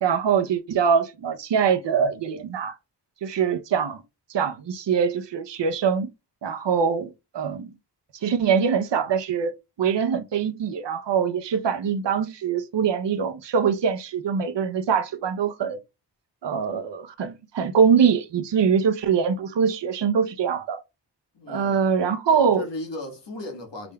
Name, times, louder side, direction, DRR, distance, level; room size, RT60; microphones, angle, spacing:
voice 1, 0.0-2.8 3.2-4.0 4.3-6.1 6.4-7.7 8.2-9.5 9.8-15.8 16.4-20.8 21.5-22.6, right 6 dB, 80° right, 0.7 m, -23 dB
voice 2, 21.3-21.8 22.3-23.9, left 2 dB, 80° left, 1.5 m, -36 dB
4.9 x 3.4 x 2.2 m
wide cardioid pair, 80°, 42 cm